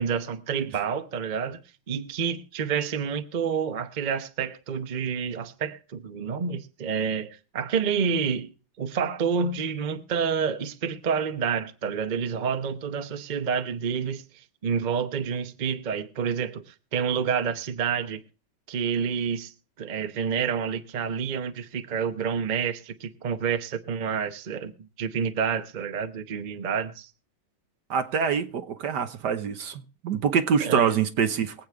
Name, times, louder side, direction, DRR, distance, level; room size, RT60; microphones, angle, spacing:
voice 1, 0.0-8.5 8.8-14.2 14.6-18.2 18.7-19.5 19.8-27.1 30.6-31.0, right 6 dB, 40° right, 0.6 m, -28 dB
voice 2, 27.9-31.5, right 7 dB, 65° right, 1.5 m, -25 dB
23.5 x 8.2 x 3.5 m
omnidirectional pair, 2.1 m